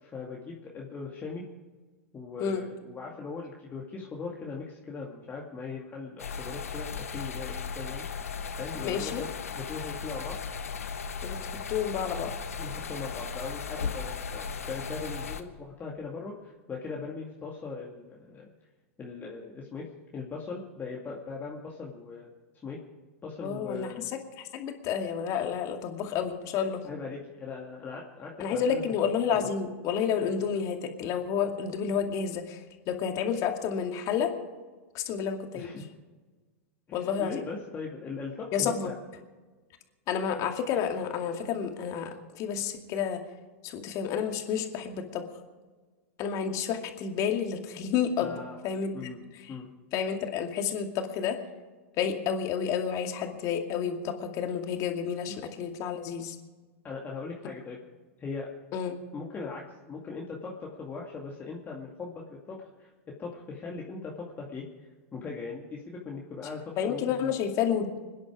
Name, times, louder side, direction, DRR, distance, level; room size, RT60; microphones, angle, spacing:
voice 1, 0.0-1.4 2.1-8.1 8.6-9.3 9.6-10.4 12.6-18.5 19.0-19.9 20.1-22.3 22.6-22.8 23.2-24.1 26.6-29.1 35.5-35.9 36.9-38.9 48.2-48.6 48.9-49.2 49.5-49.7 56.8-57.8 58.2-58.5 59.1-64.7 65.1-67.3, left 4 dB, 25° left, -2 dB, 2.3 m, -39 dB
sound 1, 6.2-15.4, left 6 dB, 85° left, 1.1 m, -36 dB
voice 2, 8.8-9.2 11.2-12.3 23.4-23.9 24.5-26.8 28.4-32.6 32.9-34.3 34.9-35.7 36.9-37.4 38.5-38.9 40.1-43.2 43.6-45.2 46.2-49.3 49.9-51.4 52.0-56.4 58.7-59.0 66.8-68.0, left 7 dB, 45° left, 4 dB, 2.3 m, -30 dB
26.0 x 10.5 x 4.9 m, 1.3 s
hypercardioid pair, 95°, 8 cm